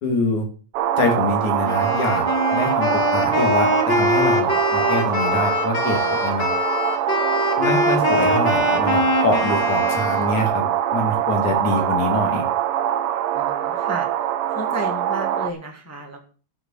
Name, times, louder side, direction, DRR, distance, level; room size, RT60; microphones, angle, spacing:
voice 1, 0.0-0.5 1.0-2.2 2.5-6.5 7.6-12.4, left 2 dB, 80° left, 3 dB, 4.1 m, -25 dB
sound 1, 0.7-15.5, right 11 dB, 70° right, 1.4 m, -23 dB
Wind instrument woodwind instrument, 1.6-10.4, left 3 dB, 40° left, 2.5 m, -23 dB
voice 2, 13.3-14.1 14.5-16.3, right 2 dB, 5° left, 2 dB, 1.4 m, -32 dB
12.0 x 6.8 x 6.5 m, 0.38 s
omnidirectional pair, 3.3 m